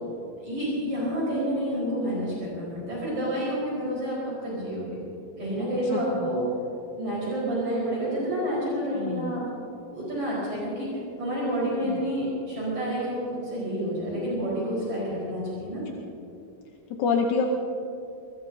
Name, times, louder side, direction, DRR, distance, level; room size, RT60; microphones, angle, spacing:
voice 1, 0.4-5.0 5.4-6.4 7.0-9.4 9.9-10.9 11.2-15.8, equal, 50° right, -7 dB, 5.7 m, -29 dB
voice 2, 5.9-6.3 8.9-9.3 11.8-12.0 16.9-17.5, left 5 dB, 70° left, 1 dB, 2.0 m, -27 dB
24.0 x 20.5 x 2.8 m, 2.7 s
omnidirectional pair, 4.3 m